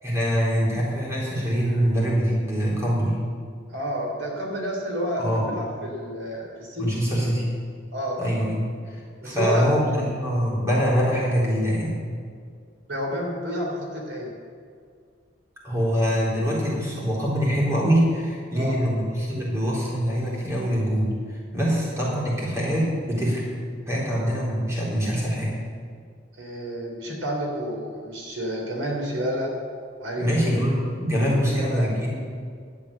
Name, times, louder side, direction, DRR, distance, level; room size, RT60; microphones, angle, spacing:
voice 1, 0.0-3.2 5.2-5.5 6.8-7.5 8.2-8.6 8.9-11.9 15.6-23.4 23.9-25.5 30.2-32.2, equal, 15° right, -6 dB, 3.8 m, -24 dB
voice 2, 3.7-7.0 7.9-8.2 9.2-9.7 12.9-14.3 18.5-18.8 26.4-29.5 30.0-30.6 31.4-31.9, equal, 80° right, -1 dB, 3.3 m, -30 dB
11.0 x 8.6 x 8.5 m, 2.1 s
head